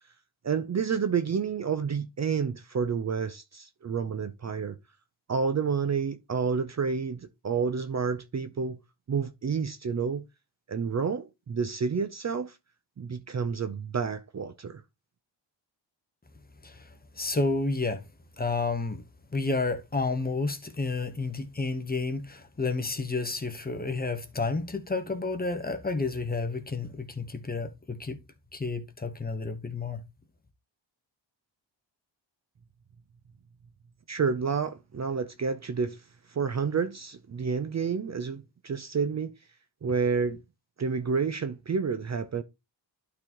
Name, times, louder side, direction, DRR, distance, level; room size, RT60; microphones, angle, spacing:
voice 1, 0.4-4.8 5.3-8.8 9.1-10.2 10.7-12.6 13.0-14.8 34.1-39.3 39.8-40.4 40.8-42.4, right 5 dB, 35° right, 0.6 m, -29 dB
voice 2, 17.1-18.1 18.4-19.0 19.3-28.2 28.5-30.0, left 3 dB, 20° left, 1.0 m, -30 dB
11.5 x 4.1 x 2.9 m
wide cardioid pair, 105°, 45 cm